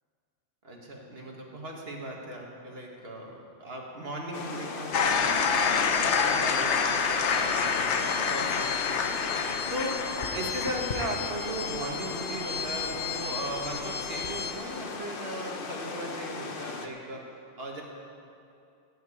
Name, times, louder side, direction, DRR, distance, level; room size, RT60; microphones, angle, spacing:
voice 1, 0.6-9.4 9.7-17.2 17.6-17.8, right 1 dB, 60° right, -1 dB, 2.1 m, -37 dB
sound 1, 4.3-16.9, left 4 dB, 55° left, 1.0 m, -38 dB
sound 2, 4.9-14.5, left 6 dB, 80° left, 1.1 m, -28 dB
16.5 x 6.7 x 8.6 m, 2.5 s
omnidirectional pair, 1.2 m